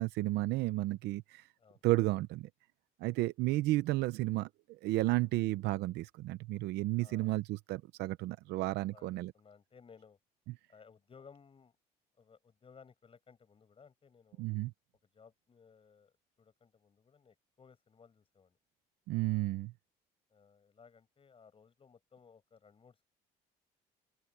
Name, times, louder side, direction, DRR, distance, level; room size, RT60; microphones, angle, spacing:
voice 1, 0.0-1.5 1.8-2.5 3.0-4.5 4.8-9.3 14.4-14.7 19.1-19.7, right 18 dB, 85° right, 0.6 m, -32 dB
voice 2, 7.0-7.3 8.9-10.2 10.7-11.8 12.2-14.5 15.1-18.6 20.3-23.1, left 6 dB, 35° left, 7.9 m, -60 dB
open air
cardioid pair, 110°, 17 cm